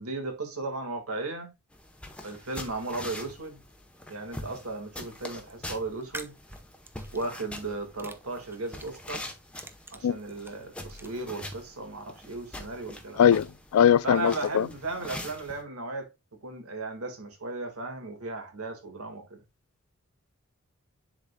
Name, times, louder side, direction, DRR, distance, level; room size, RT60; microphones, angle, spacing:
voice 1, 0.0-1.5 2.2-3.6 4.1-6.3 7.1-9.2 9.9-13.2 14.0-16.1 16.4-19.4, right 2 dB, 90° right, 1.9 m, -36 dB
sound 1, 1.7-15.6, left 1 dB, 5° left, 0.9 m, -44 dB
sound 2, 5.2-5.5 6.0-7.6 8.0-9.0 9.4-11.1, right 2 dB, 10° right, 0.5 m, -45 dB
voice 2, 13.2-14.7, left 9 dB, 80° left, 0.3 m, -21 dB
10.5 x 4.0 x 2.2 m
head